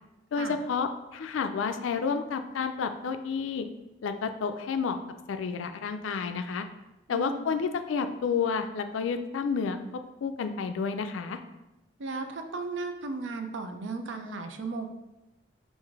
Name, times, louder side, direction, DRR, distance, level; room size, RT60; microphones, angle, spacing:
voice 1, 0.3-3.7 4.0-5.0 5.3-6.7 7.1-9.8 10.2-11.4, left 5 dB, 90° left, 8 dB, 0.4 m, -30 dB
voice 2, 7.1-7.6 12.0-14.9, right 3 dB, 75° right, 6 dB, 0.5 m, -35 dB
3.8 x 2.5 x 4.6 m, 0.98 s
head